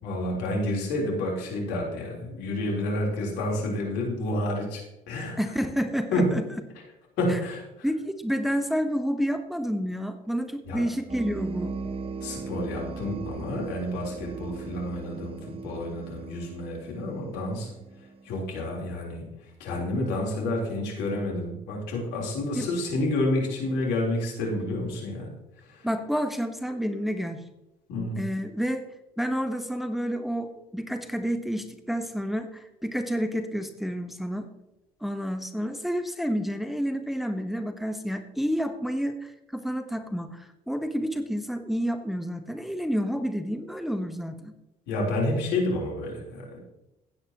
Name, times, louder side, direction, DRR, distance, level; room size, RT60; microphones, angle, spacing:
voice 1, 0.0-5.4 6.1-6.3 7.2-7.9 10.7-10.8 12.2-17.7 18.2-19.2 19.6-25.3 25.6-25.9 27.9-28.2 44.9-46.6, left 1 dB, 70° left, -2 dB, 3.7 m, -29 dB
voice 2, 5.4-6.4 7.3-7.4 7.8-11.8 22.5-22.7 25.8-27.4 28.2-28.9 29.2-34.5 35.0-44.5, equal, ahead, 7 dB, 1.0 m, -29 dB
sound 1, 11.1-18.5, right 4 dB, 30° right, 0.9 m, -38 dB
16.5 x 8.9 x 2.9 m, 0.90 s
hypercardioid pair, 55°, 18 cm